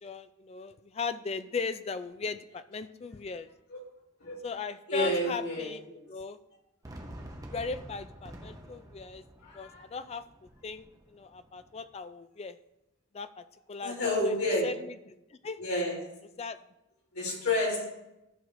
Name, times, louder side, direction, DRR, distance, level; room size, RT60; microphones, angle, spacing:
voice 1, 0.0-3.5 4.4-5.8 6.1-6.4 7.5-9.2 9.5-10.2 10.6-12.6 13.1-14.0 14.2-14.3 14.6-15.6 16.4-16.6, left 4 dB, 30° left, 12 dB, 0.3 m, -38 dB
voice 2, 4.9-5.7 9.4-9.8 13.8-14.6 15.6-15.9 17.1-17.9, left 1 dB, 85° left, -4 dB, 3.4 m, -29 dB
Fireworks, 6.8-11.9, right 1 dB, 15° right, 0.8 m, -48 dB
14.0 x 6.5 x 2.6 m, 0.93 s
head